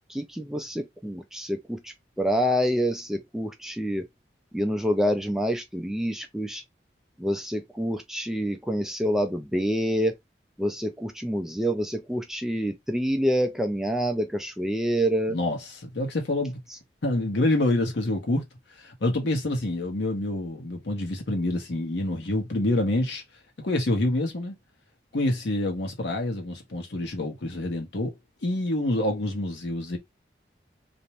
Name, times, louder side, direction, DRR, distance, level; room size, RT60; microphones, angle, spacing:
voice 1, 0.1-4.1 4.5-6.6 7.2-10.1 10.6-15.4, equal, 5° right, 0.3 m, -27 dB
voice 2, 15.3-16.6 17.0-18.4 18.8-23.2 23.6-24.5 25.1-28.1 28.4-30.0, left 1 dB, 90° left, 0.9 m, -27 dB
2.5 x 2.1 x 2.8 m
head